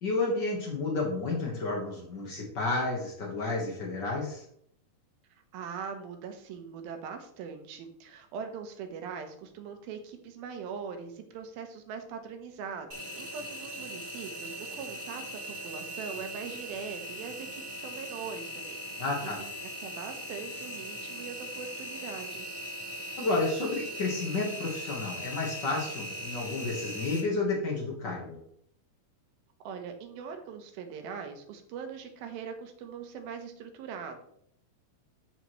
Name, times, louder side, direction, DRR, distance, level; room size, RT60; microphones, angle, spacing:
voice 1, 0.0-4.4 19.0-19.4 23.2-28.4, left 3 dB, 85° left, -2 dB, 0.9 m, -31 dB
voice 2, 5.5-15.2 15.5-19.5 19.8-22.6 29.6-34.2, right 6 dB, 85° right, 6 dB, 2.8 m, -41 dB
Engine, 12.9-27.2, equal, 35° right, 2.8 m, -40 dB
13.5 x 4.6 x 3.1 m, 0.69 s
omnidirectional pair, 4.2 m